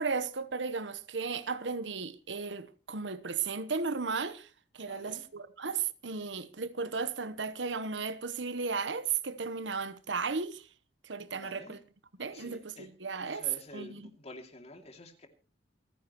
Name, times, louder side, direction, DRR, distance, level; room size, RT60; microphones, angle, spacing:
voice 1, 0.0-4.5 4.7-10.7 11.0-11.8 12.2-13.5 13.7-14.1, right 5 dB, 90° right, 1.1 m, -35 dB
voice 2, 4.8-5.2 11.3-11.8 12.3-12.9 13.2-15.3, left 2 dB, 35° left, 2.6 m, -49 dB
28.0 x 10.5 x 3.1 m
head